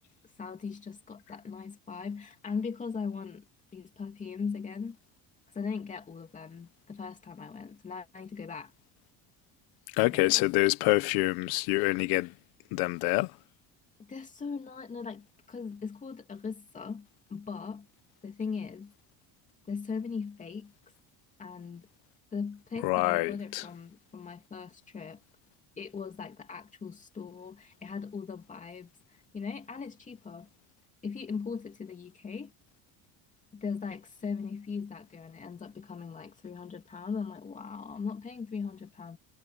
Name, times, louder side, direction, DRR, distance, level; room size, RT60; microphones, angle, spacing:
voice 1, 0.4-3.4 3.7-5.0 5.5-8.7 10.0-10.4 14.0-17.9 18.2-18.9 19.7-20.7 21.4-21.9 22.3-25.2 25.8-30.5 31.0-32.5 33.5-39.2, left 5 dB, 20° left, 2.8 m, -39 dB
voice 2, 10.0-12.3 12.7-13.3 22.8-23.6, left 21 dB, 90° left, 1.2 m, -26 dB
cardioid pair, 165°, 37 cm